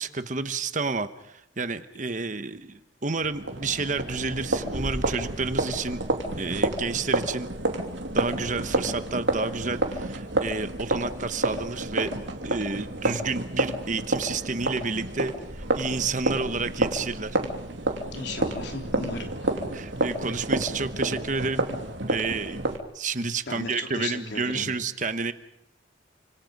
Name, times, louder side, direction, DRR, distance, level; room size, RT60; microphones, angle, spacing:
voice 1, 0.0-6.0 6.4-7.5 8.1-12.1 12.4-17.4 19.7-21.6 22.1-22.7 22.9-25.3, right 4 dB, 40° right, 11 dB, 1.1 m, -30 dB
sound 1, 3.2-22.8, right 1 dB, 70° right, 2.8 m, -29 dB
voice 2, 18.1-19.5 23.5-24.7, left 3 dB, 60° left, 3 dB, 3.5 m, -36 dB
29.0 x 26.5 x 5.4 m, 0.80 s
head